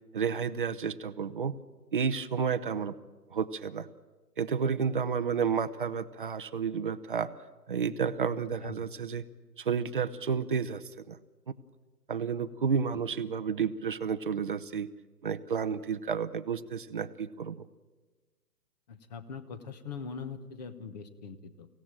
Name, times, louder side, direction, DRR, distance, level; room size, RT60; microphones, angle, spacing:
voice 1, 0.1-1.5 1.9-2.9 3.3-3.9 4.4-7.3 7.7-9.2 9.6-11.2 12.1-14.9 15.2-17.7, right 6 dB, 30° right, 12 dB, 0.7 m, -31 dB
voice 2, 18.9-21.7, left 5 dB, 25° left, 12 dB, 1.1 m, -42 dB
24.5 x 17.0 x 8.8 m, 1.3 s
hypercardioid pair, 150°, 50 cm